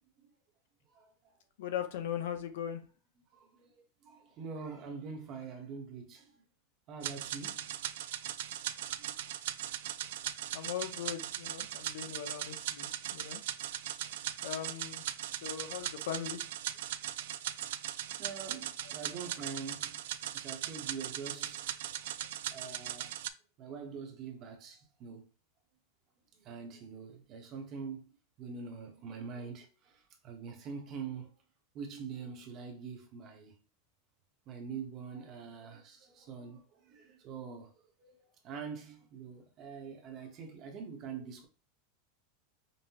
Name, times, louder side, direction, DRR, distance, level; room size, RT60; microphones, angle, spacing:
voice 1, 1.6-2.8 10.5-13.4 14.4-15.0 15.4-16.4 18.8-18.9, left 9 dB, 70° left, 0.7 m, -39 dB
voice 2, 3.3-3.7 4.0-6.3 6.9-7.7 8.7-9.4 18.2-20.0 20.3-21.7 22.0-22.1 22.5-23.1 23.6-25.3 26.3-28.0 28.4-31.3 31.7-33.6 34.5-37.7 38.0-41.5, right 5 dB, 30° right, 0.9 m, -44 dB
sound 1, 7.0-23.3, right 12 dB, 70° right, 0.3 m, -39 dB
5.3 x 2.1 x 2.8 m
supercardioid pair, 175°, 0 cm